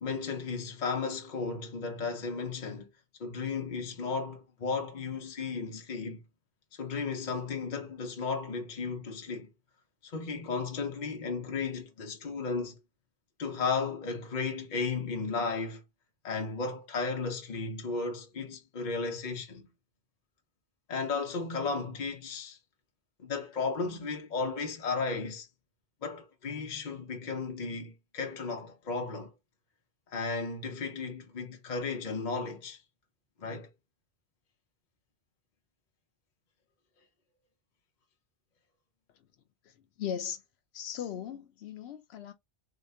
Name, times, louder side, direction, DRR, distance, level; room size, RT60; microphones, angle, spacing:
voice 1, 0.0-2.9 3.2-6.2 6.7-9.5 10.0-12.8 13.4-15.8 16.2-19.7 20.9-22.6 23.2-25.5 26.0-29.3 30.1-32.8 33.4-33.7, left 4 dB, 50° left, 0.8 m, -34 dB
voice 2, 39.6-40.4 40.7-42.3, left 9 dB, 85° left, 0.8 m, -38 dB
3.2 x 2.8 x 2.6 m
omnidirectional pair, 1.1 m